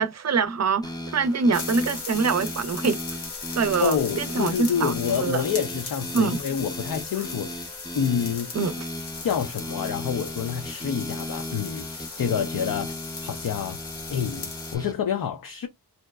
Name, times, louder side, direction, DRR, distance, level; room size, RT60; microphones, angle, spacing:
voice 1, 0.0-3.0 3.5-4.9 5.2-5.4 6.1-6.4 8.5-8.9, right 4 dB, 45° right, 0.5 m, -24 dB
sound 1, 0.8-14.9, left 1 dB, 10° left, 0.6 m, -37 dB
sound 2, 1.5-14.8, left 4 dB, 85° left, 0.9 m, -37 dB
voice 2, 3.8-7.7 7.9-8.5 9.2-13.8 14.1-15.7, left 8 dB, 60° left, 0.5 m, -28 dB
2.8 x 2.1 x 2.2 m
cardioid pair, 55°, 39 cm